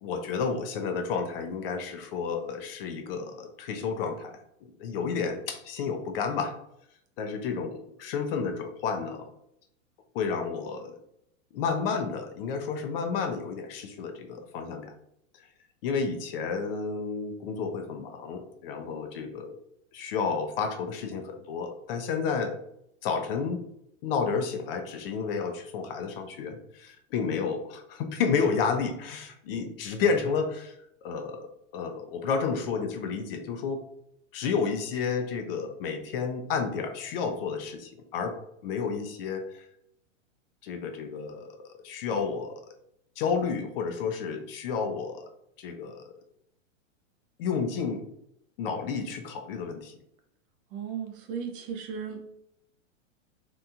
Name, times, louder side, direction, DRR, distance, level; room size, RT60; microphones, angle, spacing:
voice 1, 0.0-4.4 4.8-6.6 7.2-9.3 10.1-11.0 11.5-14.9 15.8-19.6 19.9-22.6 23.0-23.6 24.0-30.8 31.0-33.8 34.3-39.7 40.6-42.5 43.2-45.3 45.6-46.0 47.4-48.0 48.6-50.0, left 5 dB, 50° left, 6 dB, 0.5 m, -31 dB
voice 2, 50.7-52.3, right 7 dB, 45° right, 4 dB, 0.6 m, -36 dB
2.8 x 2.6 x 2.3 m, 0.76 s
hypercardioid pair, 135°, 39 cm